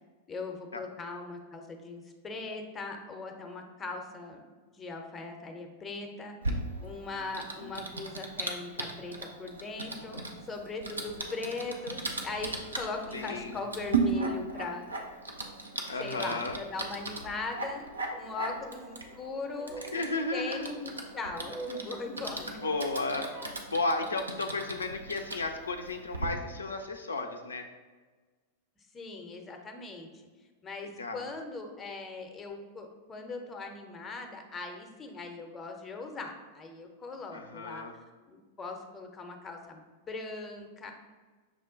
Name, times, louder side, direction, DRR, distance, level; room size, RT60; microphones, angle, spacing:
voice 1, 0.3-4.4 4.7-6.3 6.8-14.9 16.0-17.9 18.2-22.6 28.9-30.1 30.6-37.9 38.3-40.9, left 3 dB, 20° left, 4 dB, 0.6 m, -40 dB
Typing, 6.4-26.3, right 3 dB, 85° right, 0.5 m, -37 dB
voice 2, 13.1-13.6 15.9-16.6 19.8-20.7 22.6-27.7 31.0-31.3 37.3-37.9, left 3 dB, 85° left, 4 dB, 0.3 m, -33 dB
sound 1, 18.0-23.6, right 2 dB, 25° right, 0.7 m, -47 dB
6.1 x 2.2 x 3.7 m, 1.4 s
figure-of-eight pair, 95°, 0 cm